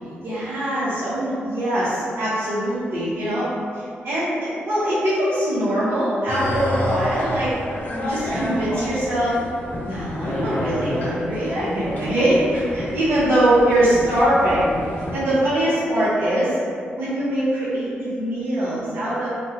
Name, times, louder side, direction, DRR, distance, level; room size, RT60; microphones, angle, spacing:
voice 1, 0.2-3.5 3.7-7.5 8.0-9.4 9.8-14.7 15.1-16.6 17.0-19.3, right 1 dB, 70° right, -12 dB, 0.9 m, -22 dB
sound 1, 6.3-15.2, left 1 dB, 40° left, 0.7 m, -29 dB
3.4 x 2.2 x 2.8 m, 2.3 s
cardioid pair, 80°, 4 cm